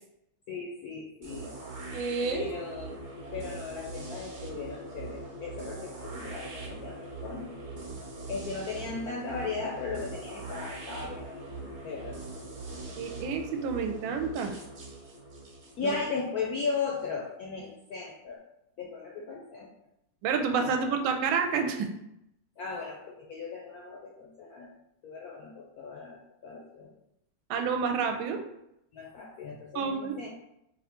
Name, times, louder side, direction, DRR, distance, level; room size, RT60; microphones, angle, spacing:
voice 1, 0.5-1.5 2.3-3.0 3.3-7.5 8.3-11.4 11.8-12.2 15.8-18.4 18.8-19.7 20.6-20.8 22.6-24.7 25.0-26.9 28.9-30.3, left 5 dB, 70° left, -2 dB, 0.9 m, -37 dB
sound 1, 1.2-17.0, right 2 dB, 45° right, 1.2 m, -42 dB
voice 2, 1.9-2.5 13.0-14.5 15.8-15.9 20.2-21.9 27.5-28.4 29.7-30.2, right 5 dB, 80° right, 5 dB, 1.4 m, -29 dB
4.1 x 3.6 x 3.6 m, 0.82 s
omnidirectional pair, 2.3 m